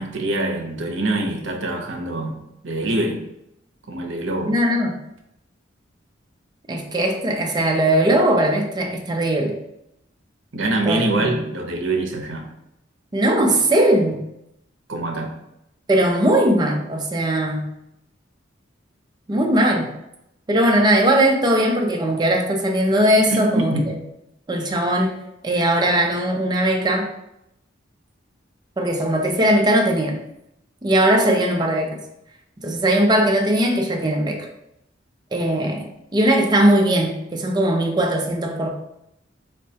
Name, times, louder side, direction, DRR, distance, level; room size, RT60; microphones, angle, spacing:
voice 1, 0.0-3.2 3.9-4.5 10.5-12.5 14.9-15.3 23.3-23.9, right 2 dB, 80° right, 3 dB, 0.6 m, -24 dB
voice 2, 4.5-5.0 6.7-9.6 10.8-11.5 13.1-14.2 15.9-17.7 19.3-19.9 20.5-23.9 24.5-25.1 25.4-27.1 28.8-30.2 30.8-32.0 32.6-34.5 35.3-38.7, right 1 dB, 25° right, 2 dB, 0.4 m, -19 dB
4.4 x 2.1 x 2.7 m, 0.82 s
head